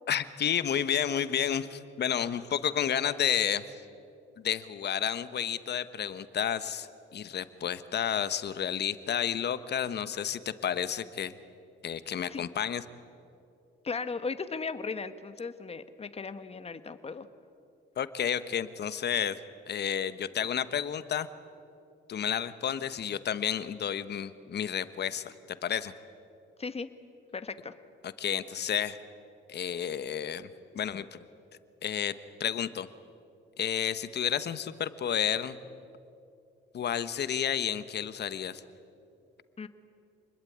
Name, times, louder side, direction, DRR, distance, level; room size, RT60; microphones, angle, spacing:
voice 1, 0.1-3.6 4.4-11.3 11.8-12.8 18.0-19.4 19.7-21.3 22.1-25.3 25.6-25.9 28.0-29.0 29.5-30.5 30.7-31.2 31.8-32.1 32.4-32.9 33.6-35.6 36.7-38.6, left 9 dB, 55° left, 13 dB, 1.3 m, -31 dB
voice 2, 13.8-17.3 26.6-26.9 27.3-27.7 39.6-39.7, left 4 dB, 30° left, 10 dB, 1.5 m, -36 dB
28.0 x 21.0 x 9.5 m, 2.6 s
cardioid pair, 90°, 20 cm